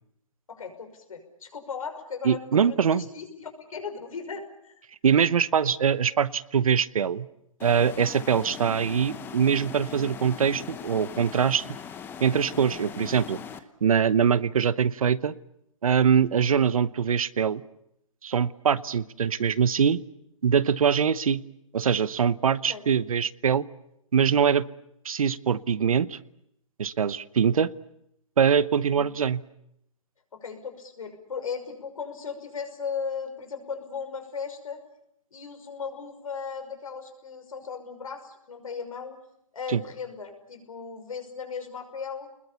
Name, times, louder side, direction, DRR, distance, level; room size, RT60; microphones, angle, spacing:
voice 1, 0.5-4.8 22.7-22.9 28.9-29.2 30.3-34.8 35.3-39.2 39.5-42.3, left 6 dB, 75° left, 6 dB, 5.8 m, -37 dB
voice 2, 2.2-3.0 5.0-7.3 7.6-11.7 12.2-13.4 13.8-15.3 15.8-17.6 18.2-20.0 20.4-21.4 21.7-23.6 24.1-24.6 25.0-26.2 26.8-27.7 28.4-29.4 39.7-39.8, right 7 dB, 75° right, 17 dB, 1.0 m, -23 dB
sound 1, 7.6-13.6, left 7 dB, 10° left, 1.0 m, -40 dB
28.5 x 21.0 x 7.0 m, 0.78 s
hypercardioid pair, 145°, 18 cm